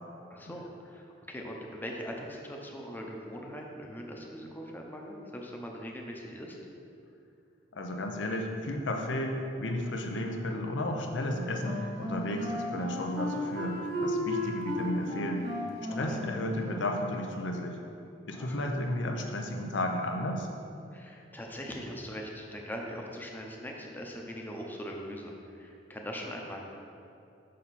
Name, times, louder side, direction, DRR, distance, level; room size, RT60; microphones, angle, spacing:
voice 1, 0.3-6.6 15.9-16.2 18.3-18.6 20.9-26.6, equal, 10° left, 0 dB, 0.7 m, -41 dB
voice 2, 7.7-15.5 15.9-17.8 18.3-20.5, left 1 dB, 80° left, 3 dB, 0.7 m, -33 dB
Wind instrument woodwind instrument, 11.2-17.1, left 1 dB, 60° right, 1.2 m, -35 dB
6.4 x 5.6 x 4.2 m, 2.6 s
head